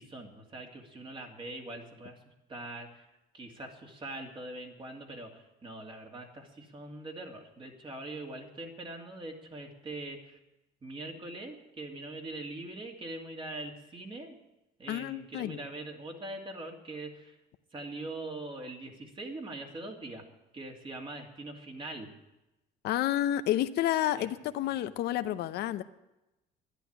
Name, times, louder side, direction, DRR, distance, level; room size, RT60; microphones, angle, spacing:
voice 1, 0.0-3.1 3.3-10.4 10.8-14.4 14.8-17.4 17.7-20.2 20.5-22.1 24.2-24.3, right 2 dB, 30° right, 2 dB, 2.6 m, -42 dB
voice 2, 14.9-15.6 22.8-25.8, left 13 dB, 75° left, 12 dB, 0.7 m, -30 dB
11.5 x 11.0 x 8.9 m, 0.97 s
cardioid pair, 110°, 17 cm